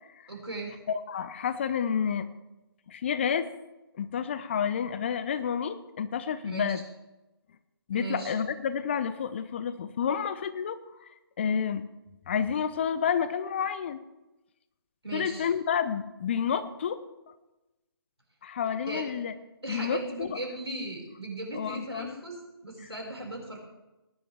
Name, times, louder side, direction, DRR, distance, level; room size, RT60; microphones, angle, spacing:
voice 1, 0.3-0.8 6.4-6.8 7.9-8.3 15.0-15.5 18.9-19.0 19.6-22.4 22.6-23.6, right 2 dB, 85° right, -1 dB, 5.2 m, -37 dB
voice 2, 0.9-2.3 2.9-3.4 4.0-6.8 7.9-11.1 11.4-11.8 12.3-14.0 15.1-17.0 18.4-19.3 19.7-20.4 21.5-22.2, left 7 dB, 30° left, 13 dB, 0.6 m, -30 dB
19.0 x 10.5 x 3.4 m, 1.0 s
figure-of-eight pair, 145°, 13 cm